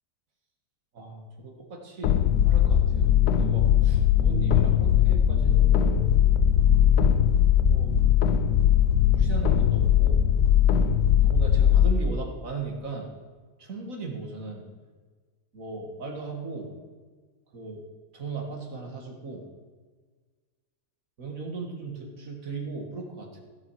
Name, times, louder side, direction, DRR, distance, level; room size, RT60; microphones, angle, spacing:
voice 1, 0.9-2.2 2.5-6.0 7.7-7.9 9.1-10.2 11.2-13.1 13.6-14.7 15.5-16.7 17.5-17.8 18.1-19.5 21.2-23.4, right 3 dB, 60° right, 1 dB, 2.1 m, -37 dB
sound 1, 2.0-11.9, left 9 dB, 75° left, 1.2 m, -20 dB
15.5 x 6.6 x 4.7 m, 1.5 s
omnidirectional pair, 1.6 m